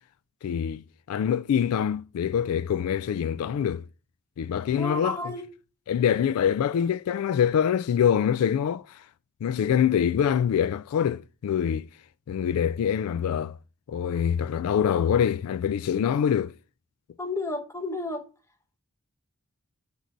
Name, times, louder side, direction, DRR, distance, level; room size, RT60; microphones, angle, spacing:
voice 1, 0.4-3.8 4.4-5.2 5.9-9.0 9.4-11.9 12.3-13.6 13.9-16.5, left 8 dB, 80° left, 0.3 m, -25 dB
voice 2, 4.8-5.4 17.2-18.3, left 2 dB, 15° left, 1.0 m, -32 dB
6.5 x 4.7 x 6.6 m
head